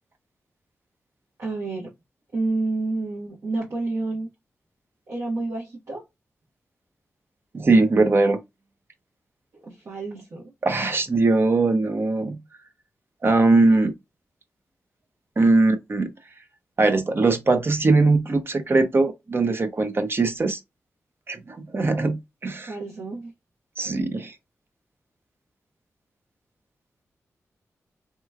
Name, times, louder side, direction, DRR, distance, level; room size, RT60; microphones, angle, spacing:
voice 1, 1.4-1.9 2.3-4.3 5.1-6.0 9.5-10.5 22.7-23.3, right 2 dB, 65° right, 1.1 m, -29 dB
voice 2, 7.5-8.4 10.6-12.4 13.2-13.9 15.4-16.1 16.8-20.6 21.3-22.7 23.8-24.3, right 3 dB, 45° right, 0.6 m, -20 dB
3.3 x 3.0 x 2.2 m
cardioid pair, 65°, 5 cm